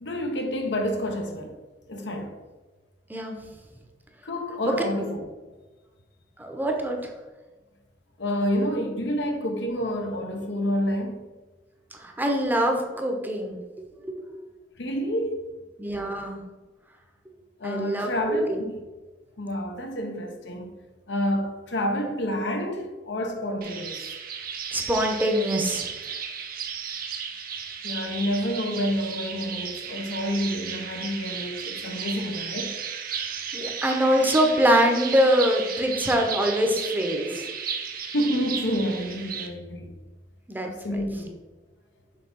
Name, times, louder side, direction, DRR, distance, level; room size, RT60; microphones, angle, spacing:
voice 1, 0.0-1.6 1.9-2.4 4.2-5.3 8.2-11.2 14.8-15.4 17.6-18.8 19.4-20.8 21.1-24.0 27.8-32.8 38.1-39.9 40.6-41.4, equal, 75° left, 0.9 m, -29 dB
voice 2, 6.4-7.1 11.9-13.6 14.0-14.2 15.8-16.4 17.6-18.6 24.7-26.2 33.5-37.5 40.5-41.0, equal, 10° right, 0.8 m, -24 dB
sound 1, 23.6-39.5, right 7 dB, 55° right, 0.7 m, -34 dB
6.7 x 3.4 x 5.3 m
head